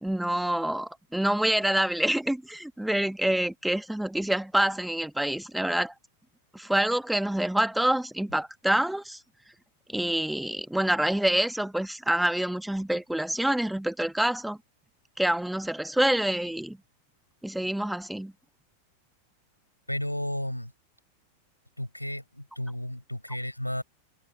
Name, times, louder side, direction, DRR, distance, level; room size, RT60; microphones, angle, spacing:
voice 1, 0.0-5.9 6.5-9.2 9.9-14.6 15.2-16.8 17.4-18.3, right 1 dB, 5° right, 1.6 m, -27 dB
voice 2, 19.9-20.7 21.8-23.8, left 1 dB, 90° left, 5.1 m, -33 dB
figure-of-eight pair, 90°, 0 cm